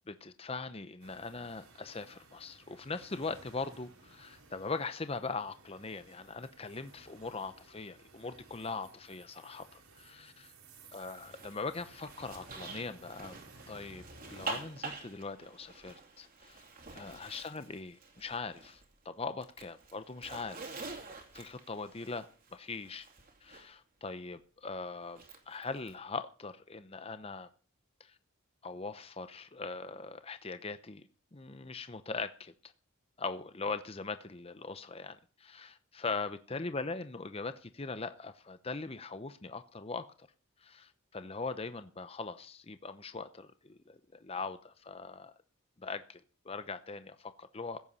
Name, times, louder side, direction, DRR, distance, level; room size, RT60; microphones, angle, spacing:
voice 1, 0.1-10.5 10.9-16.6 16.9-20.8 21.3-23.1 23.4-27.5 28.0-28.1 28.6-31.0 31.3-32.7 33.2-40.3 40.6-45.3 45.8-47.8, left 4 dB, 30° left, 0.7 m, -41 dB
sound 1, 1.0-14.6, right 2 dB, 85° right, 3.6 m, -57 dB
Zipper (clothing), 11.1-18.9 19.2-23.7 25.1-25.9, right 3 dB, 40° right, 2.6 m, -47 dB
16.0 x 8.6 x 5.5 m
head